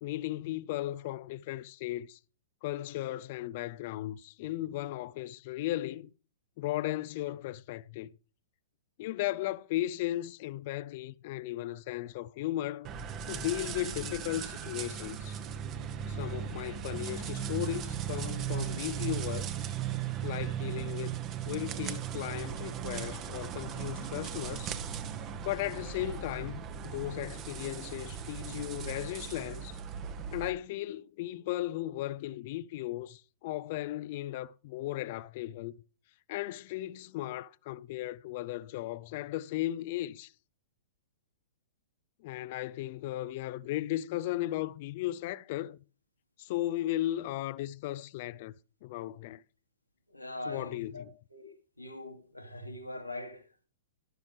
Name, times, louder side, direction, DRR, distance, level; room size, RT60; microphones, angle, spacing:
voice 1, 0.0-2.2 2.6-6.1 6.6-8.1 9.0-12.9 13.3-15.4 16.1-19.5 20.2-21.2 21.5-24.7 25.4-29.8 30.3-35.8 36.3-40.3 42.2-45.8 46.4-48.5 48.8-49.4 50.5-51.1, left 15 dB, 45° left, 0.5 m, -36 dB
sound 1, 12.8-30.5, right 9 dB, 30° right, 1.1 m, -37 dB
voice 2, 50.1-51.1 51.3-51.5 51.8-53.7, left 1 dB, 85° left, 2.4 m, -42 dB
12.0 x 12.0 x 3.4 m
figure-of-eight pair, 105°, 0 cm